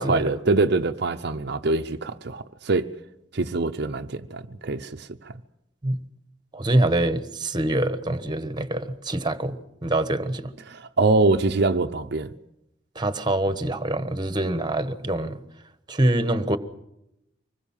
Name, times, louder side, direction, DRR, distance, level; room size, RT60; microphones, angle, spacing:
voice 1, 0.0-2.9 3.3-5.3 10.7-12.3, right 3 dB, 60° right, 0.8 m, -24 dB
voice 2, 6.5-10.5 12.9-15.4 15.9-16.6, right 1 dB, 25° right, 1.2 m, -25 dB
25.0 x 20.5 x 7.3 m
head